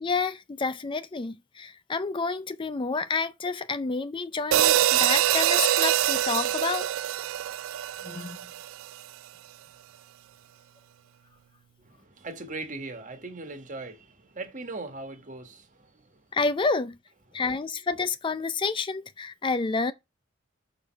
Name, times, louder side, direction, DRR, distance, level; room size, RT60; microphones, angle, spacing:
voice 1, 0.0-6.9 8.0-8.4 16.3-17.0 17.3-19.9, left 4 dB, 25° left, 0.4 m, -29 dB
sound 1, 4.5-8.9, right 12 dB, 90° right, 0.3 m, -24 dB
voice 2, 11.8-16.4 17.3-17.4, right 3 dB, 40° right, 1.4 m, -40 dB
6.5 x 5.1 x 4.3 m
head